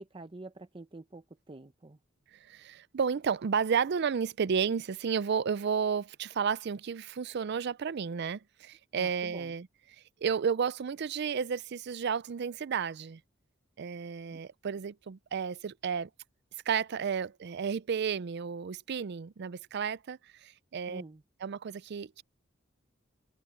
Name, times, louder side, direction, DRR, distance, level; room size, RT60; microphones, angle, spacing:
voice 1, 0.0-2.0 8.9-9.5 14.3-14.4 20.9-21.2, right 2 dB, 25° right, 0.7 m, -47 dB
voice 2, 2.3-9.7 10.2-13.2 13.8-16.1 16.7-21.0 21.4-22.2, right 6 dB, 55° right, 0.4 m, -32 dB
head